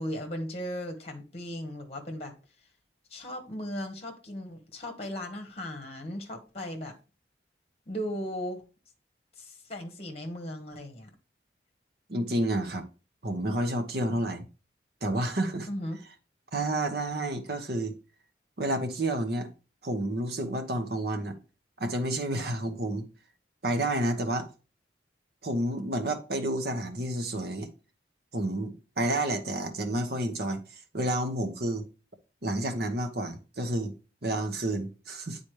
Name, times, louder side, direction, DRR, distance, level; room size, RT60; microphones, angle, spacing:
voice 1, 0.0-2.3 3.1-6.9 7.9-8.6 9.4-11.1 15.7-16.0, equal, 35° left, 1.3 m, -37 dB
voice 2, 12.1-12.8 13.2-14.4 15.0-15.7 16.5-17.9 18.6-19.5 19.8-21.4 21.8-23.1 23.6-24.5 25.4-27.7 28.3-31.8 32.4-33.9 34.2-35.4, right 1 dB, 60° right, 1.0 m, -30 dB
8.6 x 4.1 x 3.2 m
head